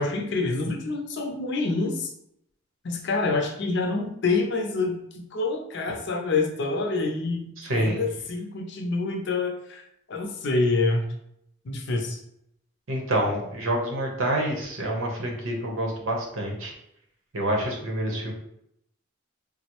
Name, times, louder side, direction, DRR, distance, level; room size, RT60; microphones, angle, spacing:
voice 1, 0.0-2.1 2.8-5.0 5.3-9.8 10.1-11.0 11.6-12.2, left 3 dB, 60° left, 2 dB, 0.5 m, -27 dB
voice 2, 7.6-8.0 12.9-16.7 17.3-18.3, right 1 dB, 80° right, 0 dB, 0.8 m, -27 dB
3.7 x 2.0 x 2.9 m, 0.77 s
head